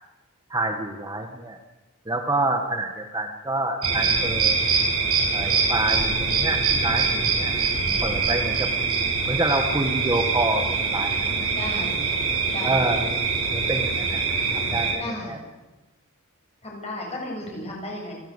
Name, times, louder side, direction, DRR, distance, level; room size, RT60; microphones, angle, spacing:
voice 1, 0.5-1.6 2.0-4.6 5.3-7.6 8.0-8.7 9.3-11.5 12.6-14.2 14.5-15.4, right 2 dB, 20° right, 4 dB, 1.5 m, -27 dB
sound 1, 3.8-14.9, right 5 dB, 80° right, 6.5 m, -24 dB
voice 2, 11.6-12.0 12.5-12.9 15.0-15.4 16.6-18.1, left 1 dB, 30° left, 0 dB, 7.4 m, -34 dB
29.0 x 13.0 x 8.1 m, 1.1 s
head